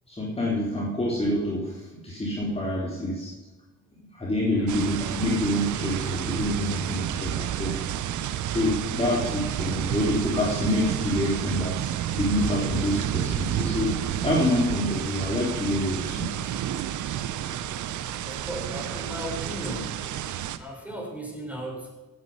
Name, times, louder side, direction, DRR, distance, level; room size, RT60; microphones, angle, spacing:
voice 1, 0.1-3.3 4.1-7.8 8.5-11.9 12.1-16.3, left 1 dB, 20° left, -5 dB, 4.0 m, -27 dB
sound 1, 4.7-20.6, right 11 dB, 75° right, 1.0 m, -30 dB
voice 2, 18.2-20.0 20.6-21.9, right 1 dB, 5° right, -1 dB, 5.5 m, -36 dB
17.0 x 9.6 x 5.7 m, 1.2 s
cardioid pair, 90°, 30 cm